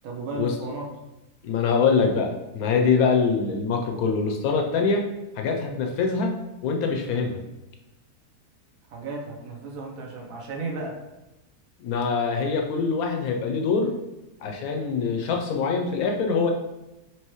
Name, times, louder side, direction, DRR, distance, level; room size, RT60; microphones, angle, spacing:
voice 1, 0.0-0.9 8.9-11.0, right 3 dB, 65° right, 0 dB, 1.1 m, -34 dB
voice 2, 1.4-5.0 5.4-6.4 6.6-7.4 11.8-13.9 14.4-16.5, left 5 dB, 75° left, 2 dB, 1.0 m, -24 dB
4.7 x 2.9 x 3.0 m, 0.99 s
omnidirectional pair, 1.6 m